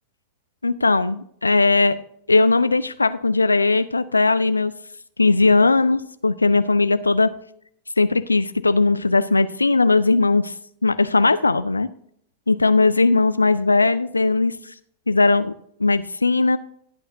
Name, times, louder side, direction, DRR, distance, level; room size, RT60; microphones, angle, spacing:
voice 1, 0.6-2.0 2.3-4.7 5.2-7.3 8.0-10.5 10.8-11.9 12.5-14.7 15.1-15.5 15.8-16.6, left 3 dB, 80° left, 13 dB, 0.4 m, -18 dB
16.5 x 9.1 x 2.7 m, 0.67 s
figure-of-eight pair, 90°, 0 cm